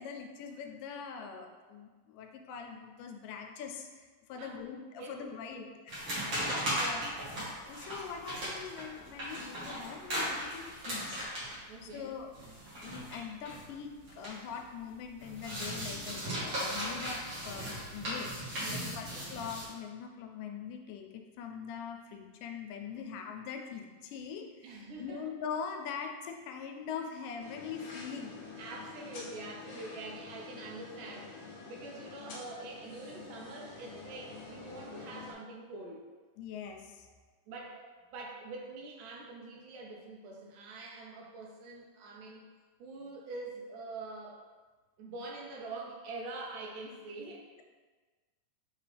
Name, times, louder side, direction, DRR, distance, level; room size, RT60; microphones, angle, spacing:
voice 1, 0.0-6.0 6.2-7.1 7.7-11.2 11.5-12.3 12.8-28.4 36.4-37.1, left 6 dB, 85° left, 3 dB, 2.2 m, -43 dB
voice 2, 4.4-4.7 5.0-5.2 5.5-5.7 6.4-6.9 11.7-12.1 18.6-19.1 24.6-25.2 28.6-36.1 37.5-37.9 38.1-42.4 42.8-44.4 45.0-47.5, right 3 dB, 75° right, -1 dB, 2.5 m, -45 dB
sound 1, 5.9-14.6 14.9-19.7, equal, 45° right, 2.2 m, -37 dB
sound 2, 27.4-35.3, left 4 dB, 60° left, 1.5 m, -48 dB
7.8 x 3.8 x 3.3 m, 1.4 s
omnidirectional pair, 3.7 m